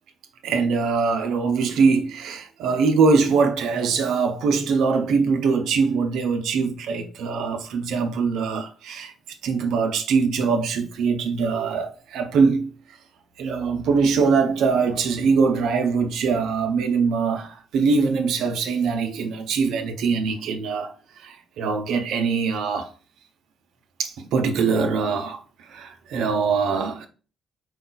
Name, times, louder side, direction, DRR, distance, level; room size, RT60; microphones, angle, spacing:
voice 1, 0.4-9.1 9.4-12.7 13.4-22.9 24.0-25.4 25.7-27.1, right 5 dB, 80° right, 0.7 m, -22 dB
4.8 x 2.3 x 3.9 m
cardioid pair, 90°, 0 cm